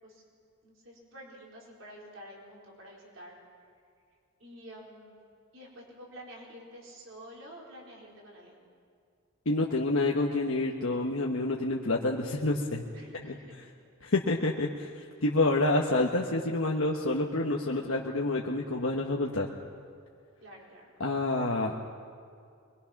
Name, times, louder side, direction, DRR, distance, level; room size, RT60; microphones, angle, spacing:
voice 1, 0.6-3.4 4.4-5.2 5.5-8.6 12.9-13.7 20.4-20.9, equal, 65° right, -3 dB, 4.5 m, -49 dB
voice 2, 9.4-12.8 13.2-13.4 14.0-19.5 21.0-22.0, left 2 dB, 70° left, -1 dB, 1.2 m, -28 dB
24.0 x 22.0 x 5.9 m, 2.3 s
head